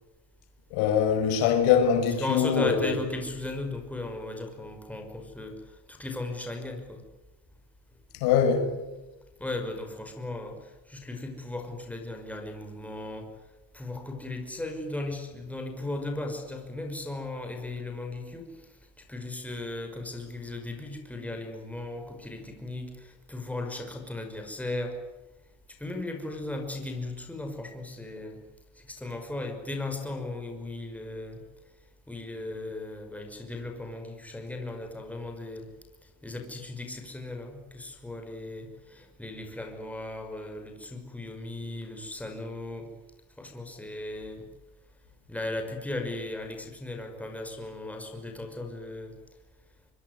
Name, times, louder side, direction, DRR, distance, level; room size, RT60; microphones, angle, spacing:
voice 1, 0.7-2.9 8.1-8.7, left 7 dB, 75° left, 6.5 m, -23 dB
voice 2, 2.2-5.6 5.9-7.0 9.4-13.3 13.7-18.6 19.1-25.0 25.8-28.4 28.8-31.4 32.1-35.7 36.2-42.9 43.4-44.4 45.3-49.2, left 2 dB, 5° left, 5.6 m, -36 dB
25.0 x 24.0 x 9.7 m
cardioid pair, 135°, 38 cm